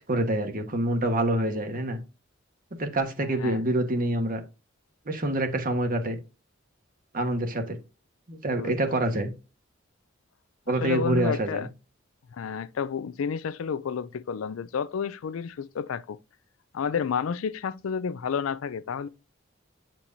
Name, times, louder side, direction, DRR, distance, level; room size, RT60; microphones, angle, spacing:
voice 1, 0.0-2.0 2.8-4.4 5.1-6.2 7.1-7.8 8.3-9.3 10.7-11.7, right 1 dB, 45° right, 1.2 m, -26 dB
voice 2, 3.3-3.6 8.6-9.1 10.7-11.7 12.3-16.2 16.7-19.1, left 6 dB, 85° left, 0.4 m, -31 dB
8.5 x 4.4 x 2.6 m
head